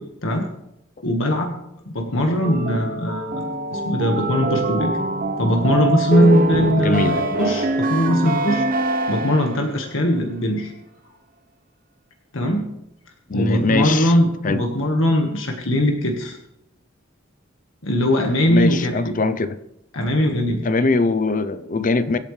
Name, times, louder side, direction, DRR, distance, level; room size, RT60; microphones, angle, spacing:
voice 1, 1.0-1.6 1.9-4.9 5.4-8.6 9.1-10.7 12.3-12.7 13.3-16.4 17.8-19.1 19.9-20.6, equal, 80° left, 1.6 m, -20 dB
sound 1, 2.4-9.7, right 2 dB, 45° right, 1.0 m, -23 dB
voice 2, 6.8-7.2 13.3-14.1 14.4-14.6 18.5-19.6 20.6-22.2, left 3 dB, 40° left, 0.6 m, -21 dB
24.0 x 8.6 x 3.3 m
head